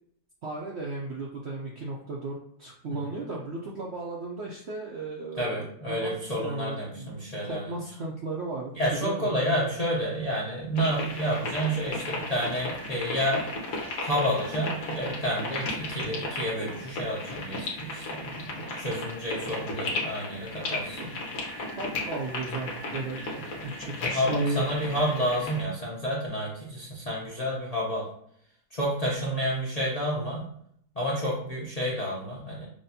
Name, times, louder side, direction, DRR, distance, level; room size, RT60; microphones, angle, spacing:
voice 1, 0.4-6.1 6.4-7.1 7.4-9.6 20.6-21.1 21.8-24.6, right 3 dB, 65° right, -2 dB, 0.6 m, -35 dB
voice 2, 5.4-7.7 8.8-13.4 14.0-21.0 24.0-28.1 28.7-30.5 31.0-32.7, equal, 40° left, -5 dB, 0.6 m, -30 dB
sound 1, 10.8-25.6, left 2 dB, 60° left, 1.4 m, -35 dB
6.1 x 2.3 x 2.7 m, 0.68 s
omnidirectional pair, 1.7 m